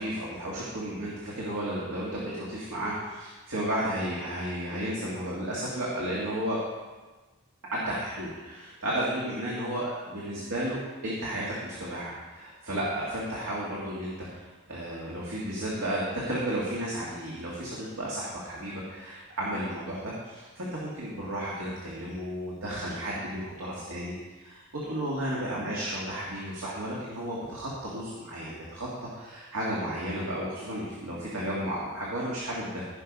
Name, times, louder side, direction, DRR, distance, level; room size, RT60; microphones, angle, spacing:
voice 1, 0.0-6.6 7.7-14.4 14.7-32.8, right 1 dB, 85° right, -6 dB, 2.2 m, -33 dB
15.5 x 5.7 x 5.5 m, 1.3 s
head